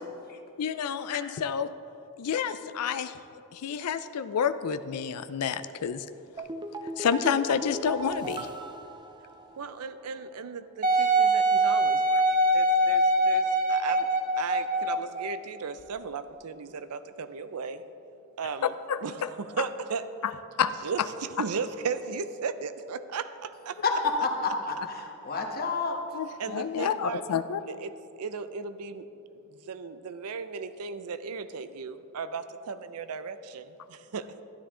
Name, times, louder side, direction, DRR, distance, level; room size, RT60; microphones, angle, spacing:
voice 1, 0.6-1.7 2.2-3.1 3.5-6.0 7.0-8.5 18.9-19.3 20.2-20.3 20.6-20.7 26.1-27.6, left 7 dB, 85° left, 11 dB, 0.4 m, -29 dB
sound 1, 6.4-9.8 10.1-10.2, right 2 dB, 20° right, 0.5 m, -38 dB
voice 2, 9.6-12.2 12.5-14.1 14.4-17.8 18.4-18.7 19.0-20.0 20.8-24.0 26.4-27.2 27.7-27.9 28.2-29.2 29.7-34.4, right 5 dB, 80° right, 12 dB, 0.5 m, -36 dB
Wind instrument woodwind instrument, 10.8-15.1 15.8-15.9, right 1 dB, 40° right, 1.1 m, -23 dB
voice 3, 23.8-26.0, left 4 dB, 45° left, 2 dB, 1.2 m, -29 dB
12.5 x 11.0 x 3.7 m, 2.7 s
head